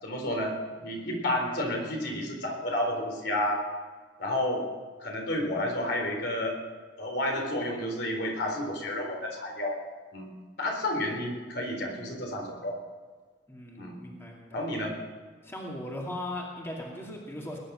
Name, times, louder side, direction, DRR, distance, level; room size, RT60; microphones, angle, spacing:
voice 1, 0.0-3.7 4.2-4.7 5.0-6.6 7.0-9.8 10.1-10.3 10.6-12.8 13.8-14.0 14.5-15.0, left 1 dB, 65° left, 1 dB, 4.0 m, -31 dB
voice 2, 13.5-14.6 15.4-17.6, left 1 dB, 15° left, -2 dB, 2.5 m, -38 dB
20.5 x 10.0 x 6.3 m, 1.5 s
head